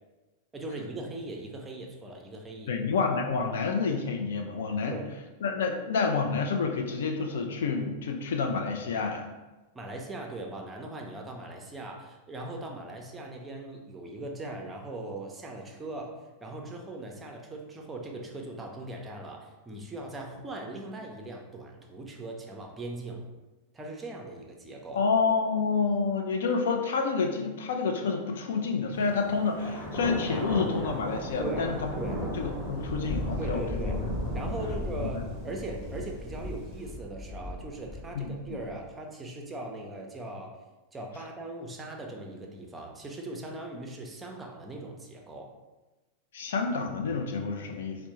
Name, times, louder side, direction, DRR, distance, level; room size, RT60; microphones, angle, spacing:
voice 1, 0.5-2.8 4.9-5.1 9.7-23.2 23.7-25.1 31.4-31.7 32.0-32.2 33.4-34.0 34.3-40.5 40.9-45.5, right 2 dB, 15° right, 1 dB, 0.5 m, -39 dB
voice 2, 2.7-5.0 5.4-9.3 24.9-31.9 32.4-33.9 38.1-38.3 46.3-48.0, left 5 dB, 60° left, 3 dB, 0.4 m, -29 dB
Thunder, 28.9-38.8, left 1 dB, 30° left, 1.0 m, -35 dB
4.2 x 2.0 x 2.9 m, 1.1 s
figure-of-eight pair, 90°, 0 cm